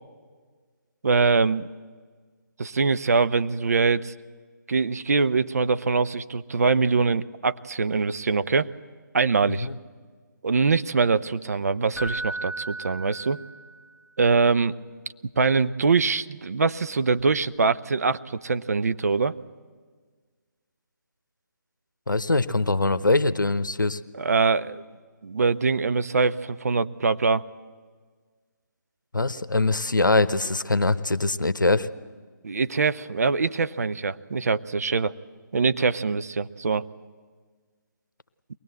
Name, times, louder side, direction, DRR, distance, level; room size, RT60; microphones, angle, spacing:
voice 1, 1.0-1.7 2.6-4.1 4.7-8.7 9.1-9.7 10.4-13.4 14.2-14.7 15.4-19.3 24.1-24.8 25.2-27.4 32.4-35.1 35.5-36.8, right 4 dB, 50° right, 12 dB, 0.7 m, -23 dB
Keyboard (musical), 11.9-13.9 17.2-17.3, right 2 dB, 10° right, 2.4 m, -35 dB
voice 2, 22.1-24.0 29.1-31.9, left 2 dB, 75° left, 14 dB, 0.9 m, -22 dB
22.5 x 19.0 x 7.9 m, 1.5 s
figure-of-eight pair, 145°, 10 cm